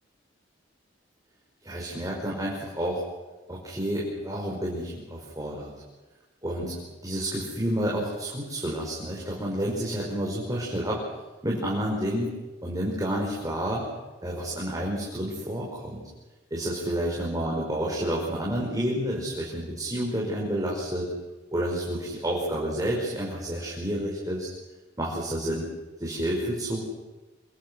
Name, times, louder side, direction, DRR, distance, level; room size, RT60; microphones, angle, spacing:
voice 1, 1.6-3.0 3.5-5.7 6.4-6.7 7.0-11.0 11.4-12.3 12.6-13.8 14.2-16.0 16.5-21.1 21.5-24.5 25.0-25.7 26.0-26.8, right 1 dB, 20° right, -4 dB, 5.5 m, -29 dB
28.5 x 23.5 x 6.4 m, 1.1 s
head